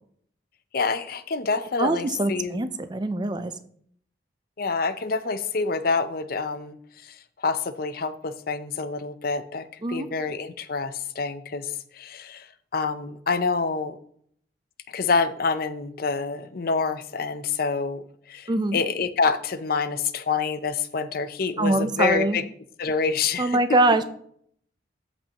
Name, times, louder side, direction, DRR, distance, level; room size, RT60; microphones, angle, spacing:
voice 1, 0.7-2.6 4.6-6.8 7.0-14.0 14.9-22.4 22.8-23.6, left 4 dB, 55° left, 12 dB, 0.6 m, -27 dB
voice 2, 1.8-3.5 9.8-10.1 18.5-18.8 21.6-22.4 23.4-24.0, right 2 dB, 25° right, 11 dB, 0.5 m, -23 dB
14.0 x 5.4 x 2.9 m, 0.63 s
head